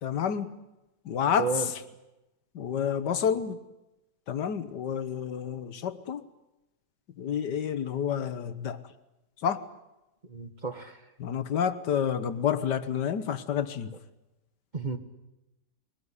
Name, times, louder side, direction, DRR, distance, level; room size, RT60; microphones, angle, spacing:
voice 1, 0.0-0.5 1.0-1.5 2.5-3.6 4.3-6.2 7.2-8.8 9.4-9.6 11.2-13.9, left 8 dB, 85° left, 13 dB, 1.8 m, -29 dB
voice 2, 1.4-1.7 10.3-11.0 14.7-15.0, right 4 dB, 30° right, 8 dB, 1.4 m, -32 dB
22.0 x 20.0 x 9.8 m, 0.97 s
omnidirectional pair, 1.8 m